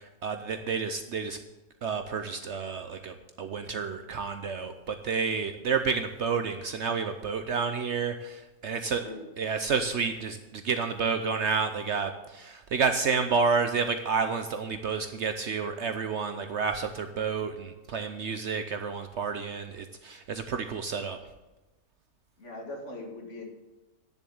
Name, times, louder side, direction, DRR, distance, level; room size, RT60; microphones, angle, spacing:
voice 1, 0.0-1.4 1.8-9.1 9.4-21.2, right 5 dB, 60° right, 8 dB, 0.8 m, -30 dB
voice 2, 8.7-9.2 22.4-23.5, left 2 dB, 50° left, 1 dB, 2.1 m, -41 dB
10.0 x 7.2 x 7.0 m, 1.1 s
omnidirectional pair, 1.6 m